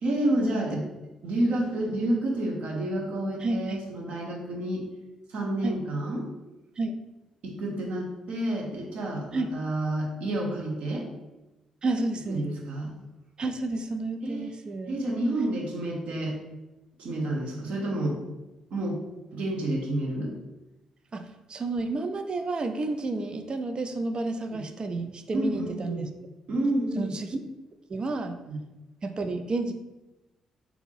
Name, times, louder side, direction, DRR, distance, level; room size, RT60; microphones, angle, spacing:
voice 1, 0.0-0.9 1.2-4.8 5.3-6.3 7.4-11.1 12.3-12.9 14.2-14.5 14.9-16.4 17.0-18.2 18.7-19.0 19.3-20.3 24.5-24.6 25.3-26.1 26.5-27.1 28.5-28.6, right 1 dB, 60° right, -1 dB, 0.8 m, -29 dB
voice 2, 3.4-3.8 5.6-5.8 6.8-6.9 9.3-9.5 11.8-12.5 13.4-15.0 21.1-26.1 27.0-27.4 27.9-28.4 29.0-29.7, right 2 dB, 35° right, 8 dB, 0.3 m, -31 dB
3.5 x 2.5 x 3.2 m, 1.0 s
figure-of-eight pair, 40°, 2 cm